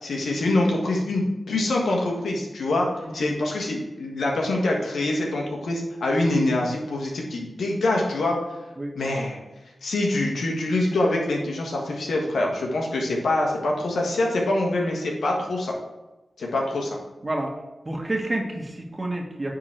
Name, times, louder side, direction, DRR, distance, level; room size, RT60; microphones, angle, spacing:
voice 1, 0.0-2.9 3.1-8.4 8.9-9.4 9.8-15.7 16.4-17.0, left 2 dB, 90° left, 0 dB, 1.4 m, -25 dB
voice 2, 17.8-19.6, right 1 dB, 35° right, 1 dB, 1.5 m, -29 dB
9.1 x 3.9 x 4.5 m, 1.1 s
cardioid pair, 45°, 0 cm